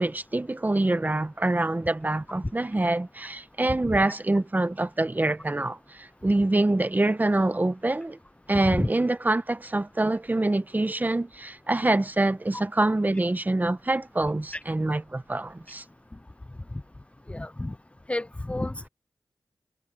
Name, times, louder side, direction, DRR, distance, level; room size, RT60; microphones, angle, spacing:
voice 1, 0.0-8.2 8.5-15.8, right 2 dB, 25° right, 1.2 m, -25 dB
voice 2, 17.3-17.7 18.1-18.9, left 1 dB, 20° left, 0.6 m, -30 dB
cardioid pair, 50°, 6 cm